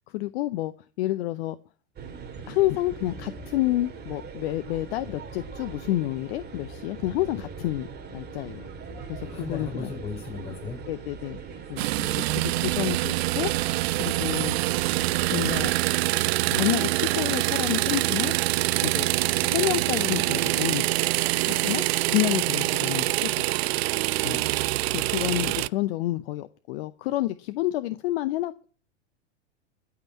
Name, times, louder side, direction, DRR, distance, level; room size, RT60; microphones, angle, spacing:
voice 1, 0.1-1.6 2.5-8.7 9.1-9.9 10.9-11.4 11.7-11.9 12.2-14.6 15.3-15.7 16.5-18.3 18.8-19.1 19.4-21.0 21.5-23.4 24.2-24.4 24.9-28.7, left 16 dB, 55° left, 13 dB, 0.8 m, -29 dB
sound 1, 2.0-15.7, right 5 dB, 25° right, 2.7 m, -41 dB
voice 2, 9.1-10.8 11.9-12.5, left 4 dB, 15° left, -1 dB, 5.2 m, -37 dB
sound 2, 11.8-25.7, right 19 dB, 60° right, 0.5 m, -25 dB
13.5 x 5.8 x 8.4 m, 0.42 s
hypercardioid pair, 95°, 35 cm